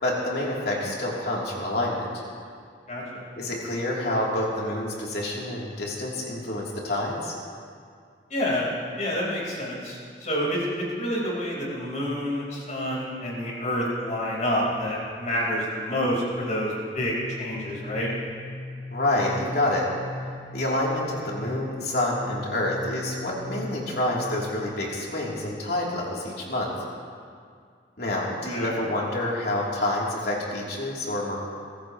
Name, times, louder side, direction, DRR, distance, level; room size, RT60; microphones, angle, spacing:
voice 1, 0.0-2.1 3.3-7.4 18.9-19.9 20.5-26.7 28.0-31.4, left 1 dB, 60° left, -4 dB, 3.2 m, -28 dB
voice 2, 2.9-3.2 8.3-8.7 9.0-18.1 28.5-28.7, equal, 40° left, -4 dB, 4.4 m, -28 dB
sound 1, 17.0-24.5, left 1 dB, 20° left, 4.3 m, -38 dB
23.5 x 15.5 x 3.1 m, 2.2 s
head